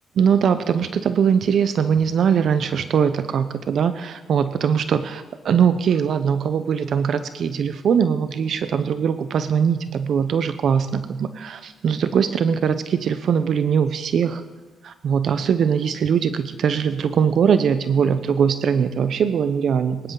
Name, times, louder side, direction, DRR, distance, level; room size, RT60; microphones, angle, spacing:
voice 1, 0.2-14.4 14.8-20.1, right 7 dB, 60° right, 11 dB, 0.7 m, -21 dB
22.5 x 11.5 x 3.9 m, 1.3 s
cardioid pair, 90°, 0 cm